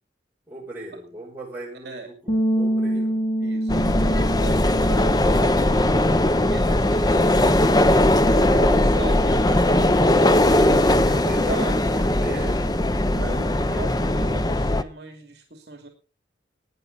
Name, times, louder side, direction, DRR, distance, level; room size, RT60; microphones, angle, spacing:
voice 1, 0.5-3.2 11.0-12.7, right 2 dB, 10° right, -4 dB, 7.2 m, -37 dB
sound 1, 2.3-8.5, right 1 dB, 40° left, 2.8 m, -28 dB
voice 2, 3.4-5.9 6.5-10.1 10.5-11.8 13.0-15.9, right 3 dB, 60° right, 3 dB, 2.8 m, -39 dB
sound 2, 3.7-14.8, left 1 dB, 20° left, 0.7 m, -19 dB
19.0 x 9.9 x 4.1 m, 0.35 s
head